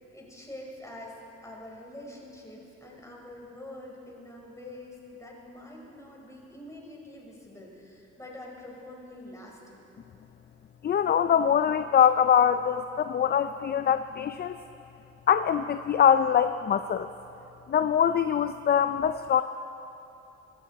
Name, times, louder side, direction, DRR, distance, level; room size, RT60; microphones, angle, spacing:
voice 1, 0.1-1.2 1.4-9.9, left 1 dB, 10° left, -2 dB, 4.1 m, -45 dB
voice 2, 10.8-14.6 15.3-17.1 17.7-19.4, left 8 dB, 35° left, 11 dB, 0.4 m, -23 dB
24.0 x 14.0 x 4.1 m, 3.0 s
cardioid pair, 90°, 30 cm